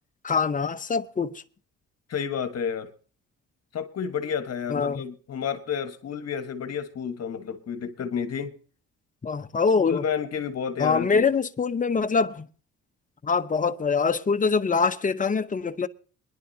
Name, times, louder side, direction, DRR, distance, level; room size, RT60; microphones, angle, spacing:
voice 1, 0.2-1.4 4.7-5.0 9.2-10.0 10.8-12.5 13.2-15.9, left 5 dB, 25° left, 0.8 m, -24 dB
voice 2, 2.1-2.9 3.7-8.5 9.8-11.3, left 7 dB, 55° left, 1.4 m, -30 dB
23.0 x 10.5 x 2.8 m
cardioid pair, 90°, 30 cm